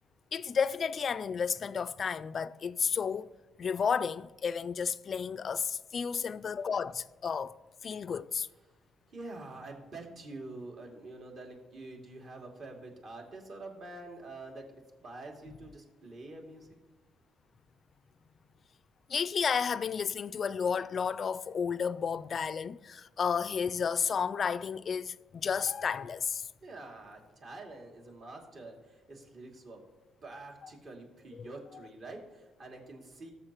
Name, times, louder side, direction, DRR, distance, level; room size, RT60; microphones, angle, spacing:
voice 1, 0.3-3.3 3.6-7.5 7.8-8.5 19.1-26.5 31.4-31.5, left 6 dB, 40° left, 0.3 m, -32 dB
voice 2, 9.1-14.7 15.0-16.7 26.6-29.8 30.2-33.3, right 2 dB, 50° right, 2.5 m, -46 dB
20.0 x 7.3 x 3.0 m
cardioid pair, 125°, 0 cm